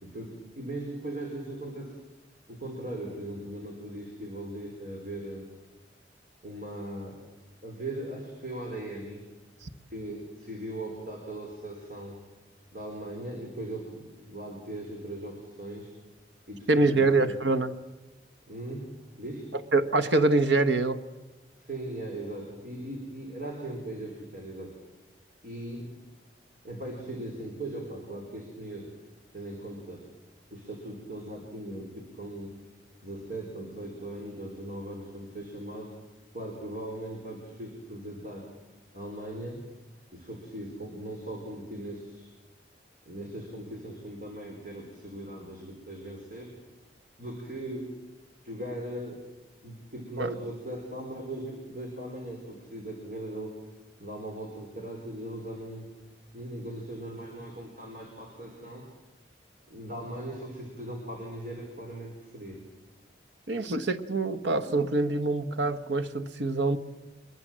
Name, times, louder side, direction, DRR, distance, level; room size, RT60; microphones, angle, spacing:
voice 1, 0.0-2.0 2.5-5.5 6.4-7.2 7.6-9.2 9.9-12.2 12.7-15.9 16.5-17.3 18.5-19.5 21.6-24.8 25.4-26.0 26.6-28.9 29.3-30.1 30.5-32.5 33.0-35.9 36.3-38.5 38.9-39.6 40.1-42.3 43.1-46.5 47.2-47.9 48.4-49.2 49.6-53.5 54.0-55.9 56.3-58.8 59.7-62.6, right 1 dB, 45° right, 4.4 m, -39 dB
voice 2, 16.7-17.7 19.5-21.0 50.2-50.3 63.5-66.8, right 2 dB, 75° right, 1.3 m, -25 dB
25.0 x 22.0 x 7.5 m
head